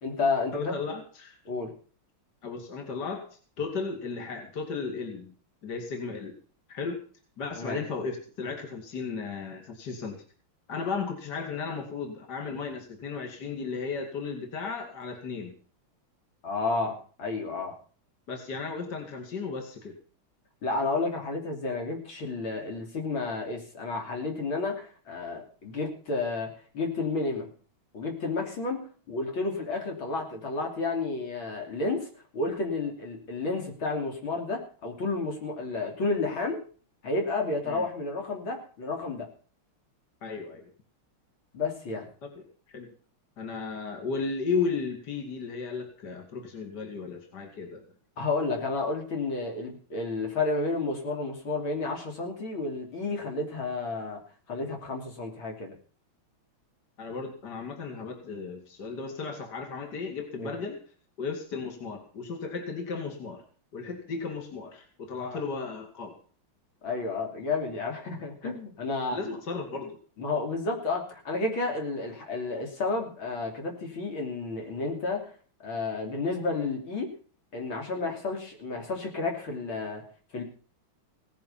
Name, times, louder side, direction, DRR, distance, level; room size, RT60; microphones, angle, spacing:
voice 1, 0.0-0.8 1.5-1.7 7.6-7.8 16.4-17.8 20.6-27.5 27.9-36.6 37.0-39.3 41.5-42.1 48.2-54.2 54.5-55.8 60.4-60.5 65.2-65.4 66.8-69.4 70.2-75.3 75.6-77.1 77.5-80.0 80.3-80.4, left 3 dB, 70° left, 2 dB, 3.9 m, -31 dB
voice 2, 0.5-1.4 2.4-5.3 5.6-6.4 6.7-7.0 7.4-10.2 10.7-15.6 18.3-20.0 37.7-37.8 40.2-40.7 42.2-42.3 42.7-42.9 43.4-47.8 57.0-60.8 61.2-63.4 63.7-66.2 69.1-70.0, left 4 dB, 50° left, 3 dB, 3.0 m, -35 dB
18.0 x 10.5 x 5.6 m, 0.41 s
omnidirectional pair, 2.3 m